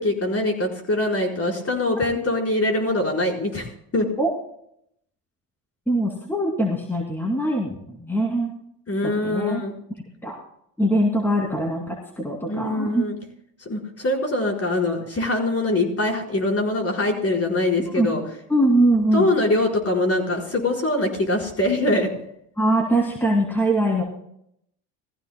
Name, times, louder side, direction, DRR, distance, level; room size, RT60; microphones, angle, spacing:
voice 1, 0.0-4.1 8.9-9.7 12.5-13.2 13.7-18.2 19.1-22.1, left 2 dB, 30° left, 0 dB, 4.7 m, -23 dB
voice 2, 5.9-8.5 9.0-9.6 10.2-10.4 10.8-13.1 17.8-18.1 18.5-19.3 22.6-24.0, right 1 dB, 5° left, -1 dB, 2.7 m, -22 dB
20.5 x 15.0 x 2.2 m, 0.72 s
supercardioid pair, 80°, 48 cm